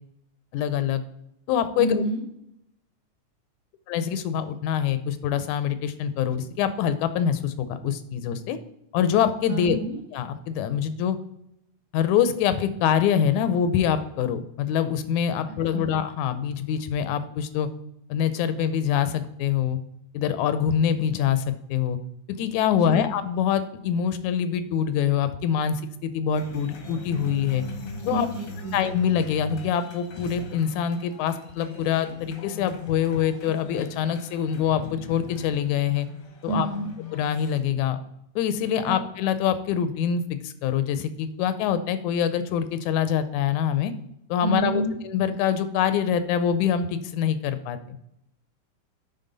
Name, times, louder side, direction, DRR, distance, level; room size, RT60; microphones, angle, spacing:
voice 1, 0.5-1.0 1.5-2.0 3.9-8.6 8.9-9.8 10.1-11.2 11.9-17.7 18.1-19.8 20.1-22.0 22.3-27.6 28.1-28.3 28.7-36.1 36.4-36.7 37.1-38.0 38.4-43.9 44.3-48.0, left 8 dB, 85° left, 11 dB, 2.0 m, -25 dB
voice 2, 1.8-2.2 9.5-10.0 15.7-15.9 22.7-23.0 28.1-28.8 36.5-36.9 38.8-39.0 44.4-45.0, right 3 dB, 55° right, -2 dB, 1.0 m, -29 dB
sound 1, 26.3-37.6, left 4 dB, 60° left, 1.1 m, -39 dB
9.2 x 4.0 x 3.9 m, 0.80 s
omnidirectional pair, 3.3 m